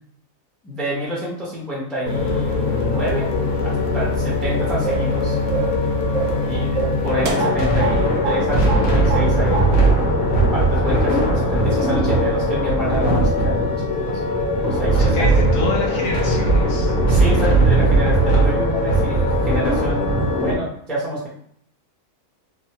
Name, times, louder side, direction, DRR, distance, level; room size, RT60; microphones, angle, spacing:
voice 1, 0.6-3.3 3.6-5.4 6.4-6.8 7.0-9.7 10.5-14.2 14.8-15.3 17.1-21.3, equal, ahead, -5 dB, 0.5 m, -28 dB
sound 1, 2.0-20.5, right 1 dB, 90° left, 1.1 m, -19 dB
voice 2, 3.6-3.9 6.4-7.6 14.9-17.0, left 1 dB, 50° left, -2 dB, 1.0 m, -30 dB
sound 2, 4.8-5.2 5.5-5.8 6.1-6.4 6.8-8.0 8.2-8.4 8.7-9.3 9.5-9.7, right 5 dB, 70° right, 0.9 m, -25 dB
3.1 x 2.2 x 2.8 m, 0.70 s
omnidirectional pair, 1.4 m